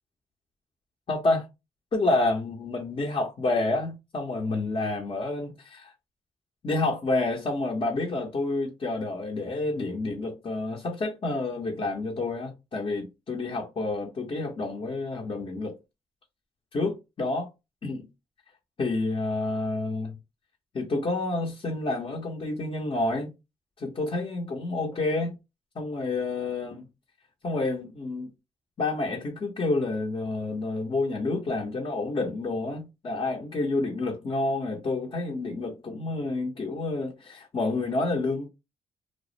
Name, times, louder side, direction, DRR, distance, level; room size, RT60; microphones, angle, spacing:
voice 1, 1.1-1.5 1.9-5.9 6.6-15.8 16.7-17.5 17.8-18.1 18.8-20.2 20.7-23.3 23.8-25.4 25.8-26.8 27.4-28.3 28.8-38.5, left 2 dB, 45° left, 0.7 m, -29 dB
2.3 x 2.0 x 2.7 m
supercardioid pair, 60°, 12 cm